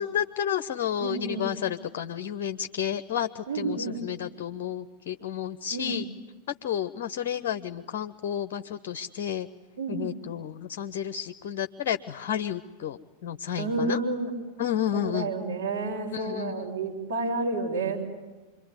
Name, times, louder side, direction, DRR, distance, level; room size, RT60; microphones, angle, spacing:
voice 1, 0.0-6.0 6.6-9.5 9.9-14.0 14.6-15.3 16.1-16.6, left 9 dB, 50° left, 9 dB, 0.8 m, -31 dB
voice 2, 1.0-1.5 3.5-4.0 5.7-6.0 9.8-10.0 13.6-14.3 14.9-18.0, right 3 dB, 65° right, 1 dB, 6.1 m, -30 dB
27.0 x 23.0 x 9.6 m, 1.2 s
figure-of-eight pair, 90°, 0 cm